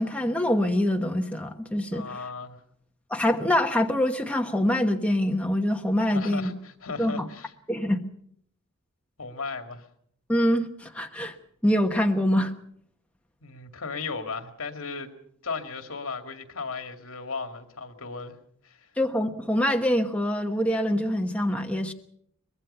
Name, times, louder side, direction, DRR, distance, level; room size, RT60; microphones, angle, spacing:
voice 1, 0.0-2.0 3.1-6.5 7.0-7.3 7.7-8.0 10.3-11.4 11.6-12.5 19.0-21.9, left 1 dB, 5° left, 1.2 m, -25 dB
voice 2, 1.9-2.6 6.0-7.5 9.2-9.9 13.4-15.1 15.4-18.4 18.6-18.9, left 4 dB, 75° left, 2.3 m, -36 dB
23.5 x 21.0 x 5.6 m
head